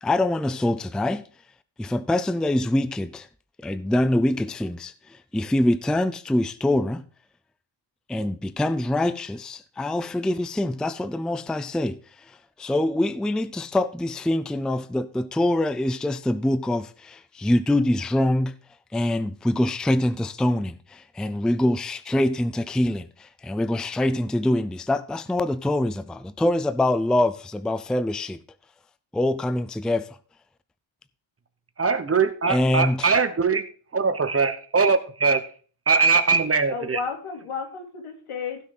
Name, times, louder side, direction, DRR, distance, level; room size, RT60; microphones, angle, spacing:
voice 1, 0.0-1.2 1.8-3.3 3.6-7.0 8.1-12.0 12.3-18.5 18.9-28.4 29.1-30.1 32.5-33.1, left 1 dB, ahead, 0.4 m, -24 dB
voice 2, 31.8-33.6 33.9-35.4 35.9-37.0, right 5 dB, 30° right, 1.2 m, -21 dB
voice 3, 36.7-38.6, left 5 dB, 90° left, 3.3 m, -32 dB
16.0 x 6.4 x 3.9 m
wide cardioid pair, 150°, 49 cm